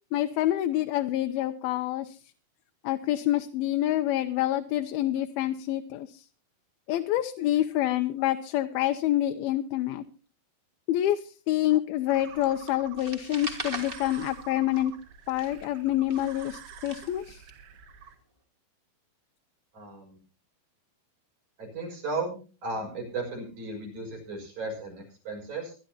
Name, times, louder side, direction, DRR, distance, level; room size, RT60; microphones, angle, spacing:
voice 1, 0.1-2.2 2.8-6.2 6.9-10.0 10.9-14.9 15.3-17.4, left 13 dB, 80° left, 7 dB, 2.6 m, -27 dB
sound 1, 12.1-18.2, right 8 dB, 90° right, 3.5 m, -47 dB
sound 2, 13.0-15.0 15.3-17.5, right 2 dB, 20° right, 1.9 m, -40 dB
voice 2, 19.7-20.2 21.6-25.7, right 3 dB, 50° right, 1 dB, 7.2 m, -35 dB
23.5 x 12.0 x 2.8 m, 0.36 s
omnidirectional pair, 4.4 m